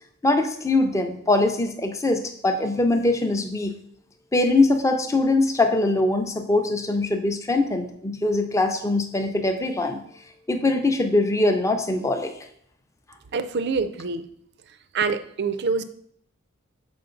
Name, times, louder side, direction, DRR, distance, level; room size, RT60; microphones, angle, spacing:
voice 1, 0.2-3.7 4.3-10.0 10.5-12.3, left 2 dB, 15° left, 6 dB, 0.5 m, -22 dB
voice 2, 13.3-14.3 14.9-15.8, right 4 dB, 50° right, 12 dB, 0.4 m, -25 dB
6.8 x 4.8 x 3.8 m, 0.67 s
head